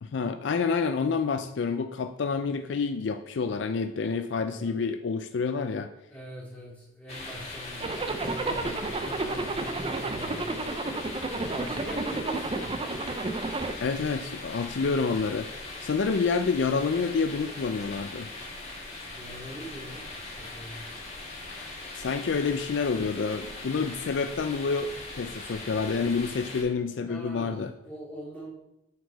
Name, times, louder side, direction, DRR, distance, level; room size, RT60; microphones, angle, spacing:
voice 1, 0.0-5.9 13.8-15.5 15.8-18.3 21.9-27.7, left 5 dB, 65° left, 8 dB, 0.4 m, -28 dB
voice 2, 4.5-4.9 6.1-10.6 11.4-12.7 19.1-20.0 20.4-20.8 27.0-28.5, right 1 dB, 5° left, -8 dB, 3.2 m, -42 dB
sound 1, 7.1-26.6, left 2 dB, 35° left, 1.9 m, -40 dB
Zipper (clothing), 7.8-13.7, right 3 dB, 30° right, 0.5 m, -31 dB
8.2 x 4.8 x 4.6 m, 0.84 s
head